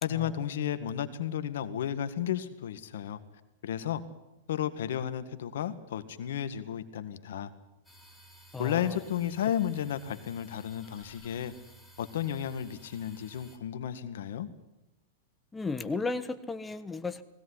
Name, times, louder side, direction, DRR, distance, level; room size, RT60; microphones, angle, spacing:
voice 1, 0.0-3.2 3.6-4.0 4.5-7.5 8.6-11.5 12.0-14.5, left 10 dB, 75° left, 10 dB, 1.8 m, -33 dB
sound 1, 7.8-13.6, right 2 dB, 5° right, 4.3 m, -55 dB
voice 2, 8.5-8.9 15.5-17.2, left 3 dB, 10° left, 11 dB, 1.3 m, -34 dB
20.0 x 17.0 x 9.9 m, 0.93 s
hypercardioid pair, 120°, 0 cm